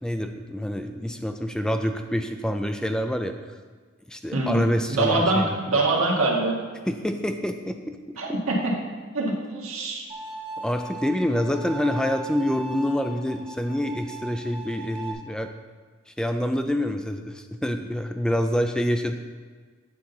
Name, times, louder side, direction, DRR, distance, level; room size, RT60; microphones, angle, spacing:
voice 1, 0.0-3.5 4.1-5.6 6.9-8.0 8.3-8.4 10.6-15.5 16.1-19.1, equal, 5° left, 6 dB, 0.4 m, -27 dB
voice 2, 4.9-6.6 8.2-8.7 9.1-10.0, right 2 dB, 90° right, -1 dB, 1.6 m, -24 dB
Bowed string instrument, 10.1-15.1, right 2 dB, 25° right, 1.2 m, -38 dB
8.6 x 5.6 x 3.9 m, 1.5 s
head